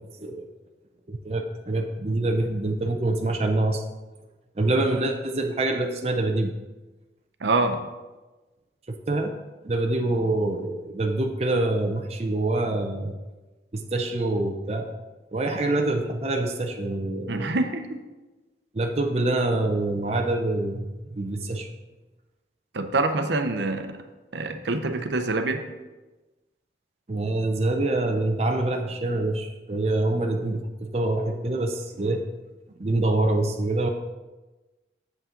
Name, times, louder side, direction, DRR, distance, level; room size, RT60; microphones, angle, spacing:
voice 1, 1.1-3.8 4.6-6.5 8.9-9.4 9.6-13.1 13.7-14.9 15.3-17.6 18.7-21.7 27.1-32.3 32.8-33.9, right 2 dB, 35° right, 3 dB, 0.5 m, -25 dB
voice 2, 7.4-7.8 17.3-18.0 22.7-23.9 24.3-25.6, right 2 dB, 70° right, 7 dB, 0.7 m, -25 dB
8.2 x 7.2 x 3.8 m, 1.2 s
head